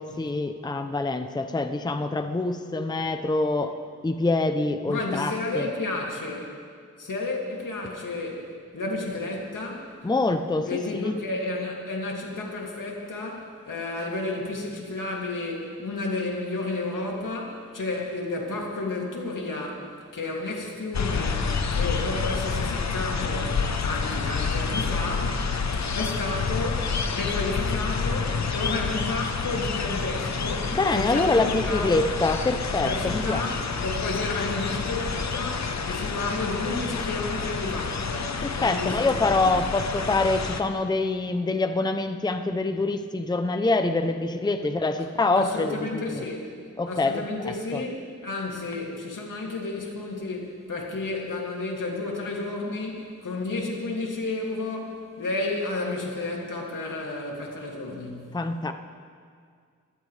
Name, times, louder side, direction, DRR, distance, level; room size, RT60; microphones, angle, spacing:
voice 1, 0.0-3.7 4.0-5.7 10.0-11.1 30.7-33.4 38.4-46.2 46.8-47.8 58.3-58.7, left 3 dB, 15° left, 8 dB, 0.6 m, -25 dB
voice 2, 4.9-6.5 7.0-8.4 8.7-9.9 10.6-25.4 25.7-31.9 32.8-39.6 45.0-45.1 45.4-46.5 46.9-58.3, left 2 dB, 90° left, -1 dB, 2.6 m, -32 dB
sound 1, 20.9-40.6, left 5 dB, 60° left, 0.9 m, -28 dB
23.5 x 14.5 x 3.3 m, 2.1 s
wide cardioid pair, 125°, 31 cm